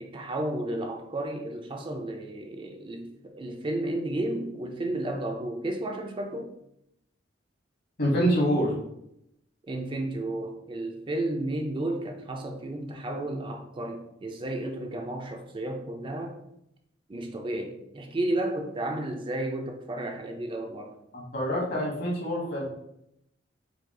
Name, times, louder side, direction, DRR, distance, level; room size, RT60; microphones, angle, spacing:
voice 1, 0.0-6.5 9.7-16.4 17.1-20.9, right 1 dB, 25° right, 3 dB, 0.4 m, -32 dB
voice 2, 8.0-8.7 21.1-22.7, equal, 60° left, -3 dB, 1.5 m, -26 dB
4.7 x 2.4 x 3.6 m, 0.80 s
head